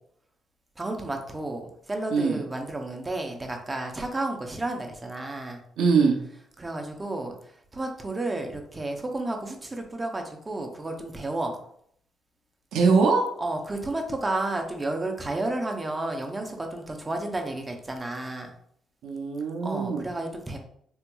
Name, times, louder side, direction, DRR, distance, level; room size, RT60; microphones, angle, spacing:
voice 1, 0.8-5.6 6.6-11.6 13.4-18.5 19.6-20.6, right 2 dB, 20° right, 3 dB, 0.6 m, -32 dB
voice 2, 2.1-2.4 5.8-6.2 12.7-13.2 19.0-20.0, right 4 dB, 80° right, 1 dB, 0.5 m, -22 dB
3.5 x 2.9 x 2.2 m, 0.66 s
cardioid pair, 90°, 0 cm